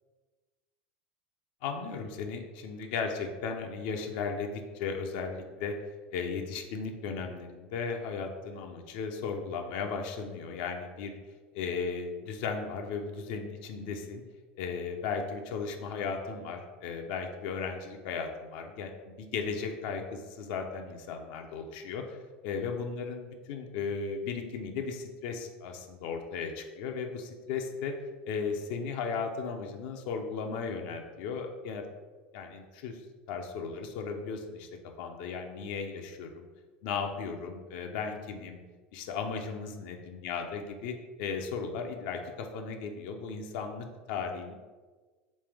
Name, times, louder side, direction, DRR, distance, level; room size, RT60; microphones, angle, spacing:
voice 1, 1.6-5.8 6.1-11.2 11.6-14.2 14.6-22.2 22.4-28.0 28.2-31.8 32.3-33.0 33.3-34.7 35.0-36.5 36.8-38.6 38.9-44.5, left 5 dB, 65° left, 4 dB, 0.5 m, -36 dB
3.3 x 3.2 x 3.3 m, 1.3 s
hypercardioid pair, 90°, 5 cm